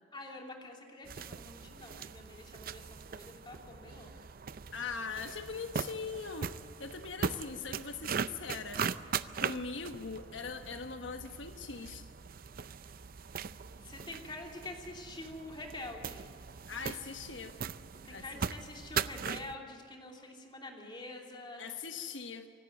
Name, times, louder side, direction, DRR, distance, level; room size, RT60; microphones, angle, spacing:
voice 1, 0.1-4.1 13.8-16.3 18.0-21.6, left 2 dB, 25° left, 1 dB, 2.9 m, -46 dB
sound 1, 1.1-19.6, right 6 dB, 50° right, 0.5 m, -40 dB
voice 2, 4.7-6.5 6.8-8.8 9.4-12.1 16.7-17.6 18.1-18.3 21.6-22.5, left 5 dB, 85° left, 7 dB, 1.2 m, -41 dB
25.0 x 12.0 x 9.1 m, 2.4 s
head